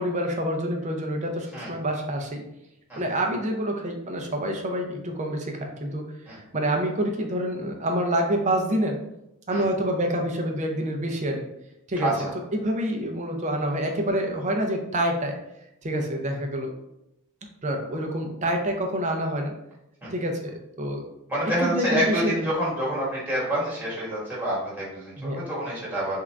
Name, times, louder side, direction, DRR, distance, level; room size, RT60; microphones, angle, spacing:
voice 1, 0.0-2.4 3.0-9.0 9.5-11.5 11.9-12.1 12.5-15.3 15.8-16.7 17.6-19.5 20.1-21.0 21.6-22.4 25.2-25.4, right 1 dB, 30° right, 3 dB, 0.5 m, -27 dB
voice 2, 21.3-26.2, right 1 dB, 10° right, -8 dB, 1.3 m, -27 dB
3.6 x 2.5 x 3.3 m, 0.83 s
head